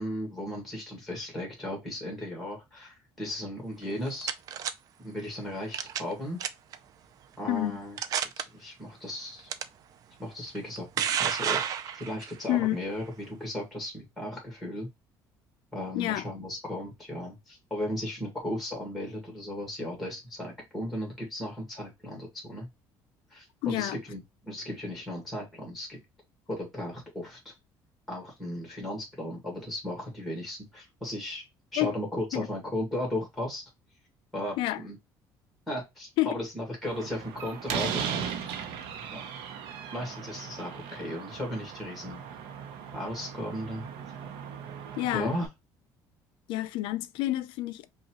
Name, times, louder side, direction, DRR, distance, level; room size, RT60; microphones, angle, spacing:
voice 1, 0.0-4.3 5.0-6.4 7.4-8.0 8.4-9.5 10.2-14.9 15.7-22.7 23.3-26.0 26.5-27.5 28.1-31.4 31.7-33.6 34.3-35.0 35.7-38.5 39.1-39.3 39.9-42.2 42.9-43.9 45.1-45.5, left 1 dB, ahead, 1.5 m, -36 dB
sound 1, 3.8-4.7 5.7-6.1 6.4-6.8 7.4-7.5 8.0-8.4 9.5-9.6 10.6-12.3, right 9 dB, 45° right, 0.4 m, -30 dB
voice 2, 23.6-24.0 31.8-31.9 32.3-32.5 34.6-34.8 36.2-36.3 45.0-45.3 46.5-47.9, left 16 dB, 80° left, 0.4 m, -28 dB
Slam, 36.9-45.5, right 7 dB, 85° right, 0.7 m, -37 dB
5.2 x 2.3 x 2.9 m
cardioid pair, 165°, 8 cm